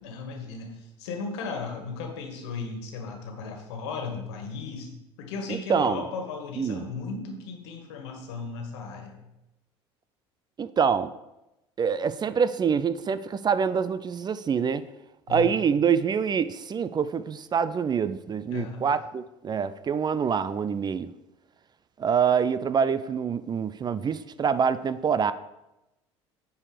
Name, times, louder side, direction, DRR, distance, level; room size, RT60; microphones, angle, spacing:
voice 1, 0.0-4.9 5.2-9.3 15.3-15.5 18.5-18.8, left 4 dB, 75° left, 4 dB, 1.7 m, -36 dB
voice 2, 5.5-6.0 6.6-6.8 10.6-11.1 11.8-14.8 15.3-21.1 22.0-25.3, right 6 dB, 30° right, 14 dB, 0.5 m, -25 dB
9.5 x 4.8 x 5.1 m, 0.94 s
hypercardioid pair, 70°, 14 cm